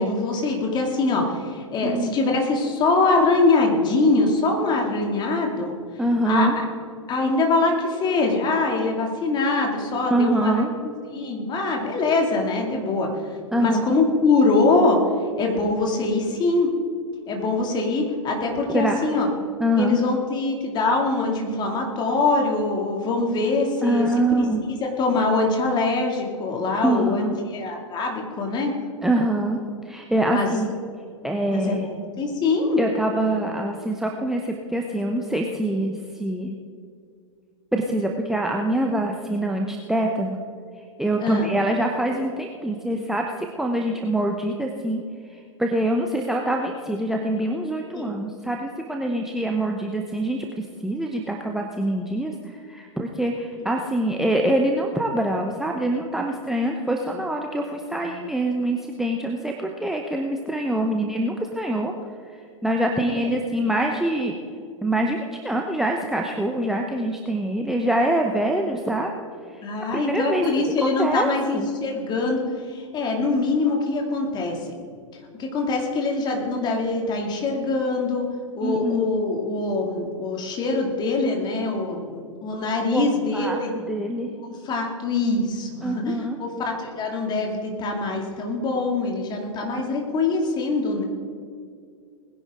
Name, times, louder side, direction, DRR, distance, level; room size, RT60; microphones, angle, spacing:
voice 1, 0.0-5.8 6.2-6.6 7.1-13.3 13.6-15.0 15.4-16.7 17.3-19.3 19.8-24.1 24.4-28.7 30.3-30.5 31.5-32.8 41.2-41.5 47.9-48.1 53.6-53.7 60.9-61.2 63.1-63.3 69.6-74.7 75.4-78.3 78.6-83.7 84.4-91.0, left 3 dB, 25° left, 1 dB, 2.6 m, -23 dB
voice 2, 1.8-2.1 6.0-6.5 10.1-10.7 13.5-13.9 18.7-19.0 19.6-20.0 23.8-24.6 26.8-27.4 29.0-29.6 29.8-30.7 31.2-31.9 32.8-36.6 37.7-40.4 41.0-45.0 45.3-61.9 62.3-64.4 64.8-69.1 69.5-69.6 69.9-70.5 70.8-71.7 78.6-79.1 82.9-83.1 83.3-84.3 85.8-86.4, right 1 dB, ahead, 1 dB, 0.8 m, -25 dB
20.5 x 10.5 x 3.8 m, 2.2 s
figure-of-eight pair, 105°, 17 cm